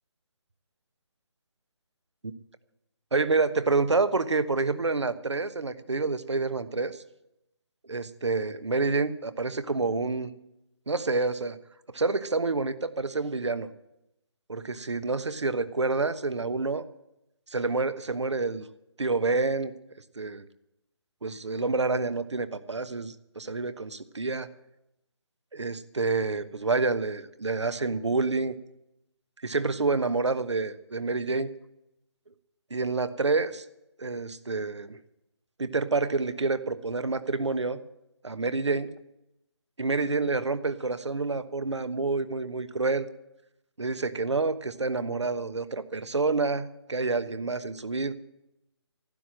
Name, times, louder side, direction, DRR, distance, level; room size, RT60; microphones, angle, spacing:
voice 1, 3.1-7.0 7.9-10.3 10.9-11.6 11.9-13.7 14.5-16.8 17.5-18.6 19.0-19.7 20.2-20.4 21.2-24.5 25.5-28.6 29.4-31.5 32.7-33.6 34.0-35.0 35.6-37.8 38.2-38.9 39.8-43.1 43.8-48.1, right 3 dB, 85° right, 12 dB, 1.1 m, -28 dB
12.5 x 10.5 x 7.6 m, 0.86 s
figure-of-eight pair, 150°, 15 cm